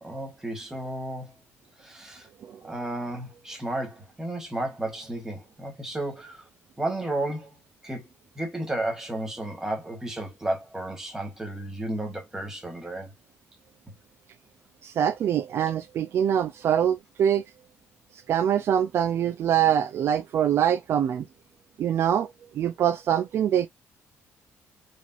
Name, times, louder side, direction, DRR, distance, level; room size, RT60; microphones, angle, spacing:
voice 1, 0.0-1.3 1.8-2.3 2.6-6.4 6.8-7.6 7.8-8.0 8.3-13.1, right 1 dB, 10° right, 1.4 m, -33 dB
voice 2, 14.8-17.4 18.1-21.2 21.8-22.3 22.5-23.7, right 9 dB, 50° right, 0.4 m, -24 dB
5.0 x 3.4 x 2.5 m
cardioid pair, 170°, 5 cm